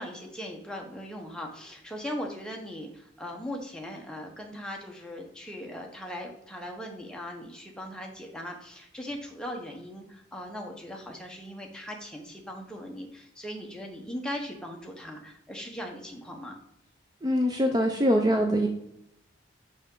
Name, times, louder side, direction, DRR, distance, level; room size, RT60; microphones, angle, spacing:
voice 1, 0.0-16.6, equal, 5° left, 1 dB, 0.8 m, -39 dB
voice 2, 17.2-18.7, equal, 20° right, 3 dB, 0.5 m, -23 dB
5.7 x 5.3 x 3.7 m, 0.78 s
head